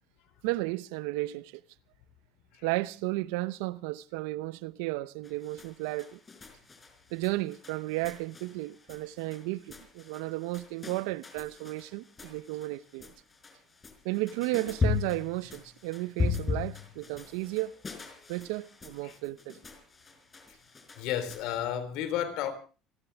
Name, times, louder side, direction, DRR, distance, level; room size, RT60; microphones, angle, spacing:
voice 1, 0.4-1.6 2.6-6.2 7.1-13.1 14.0-17.7 18.3-19.6, right 19 dB, 85° right, 0.8 m, -33 dB
sound 1, 5.2-21.6, left 5 dB, 25° left, 4.5 m, -38 dB
voice 2, 21.0-22.5, left 10 dB, 75° left, 3.5 m, -32 dB
27.5 x 13.0 x 3.5 m
supercardioid pair, 105°, 0 cm